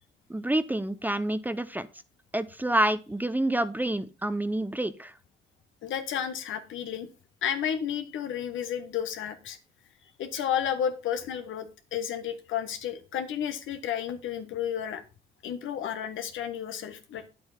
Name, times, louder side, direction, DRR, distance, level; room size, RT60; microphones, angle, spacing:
voice 1, 0.3-1.9 2.3-5.1, right 1 dB, 10° right, 14 dB, 0.7 m, -28 dB
voice 2, 5.8-7.1 7.4-9.6 10.2-15.0 15.4-17.3, left 9 dB, 80° left, 9 dB, 1.4 m, -32 dB
9.5 x 8.1 x 4.1 m, 0.31 s
cardioid pair, 90°, 20 cm